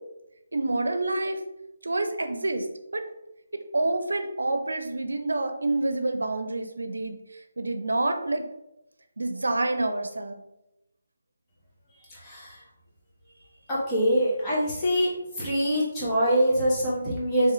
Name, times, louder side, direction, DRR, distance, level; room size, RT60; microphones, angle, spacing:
voice 1, 0.5-1.4 1.8-2.7 2.9-3.0 3.7-7.2 7.6-8.4 9.2-10.4, right 2 dB, 80° right, 7 dB, 0.6 m, -27 dB
voice 2, 12.1-12.5 13.7-15.1 15.4-17.5, equal, 15° left, -8 dB, 1.4 m, -24 dB
3.6 x 3.0 x 3.2 m, 0.90 s
figure-of-eight pair, 155°, 0 cm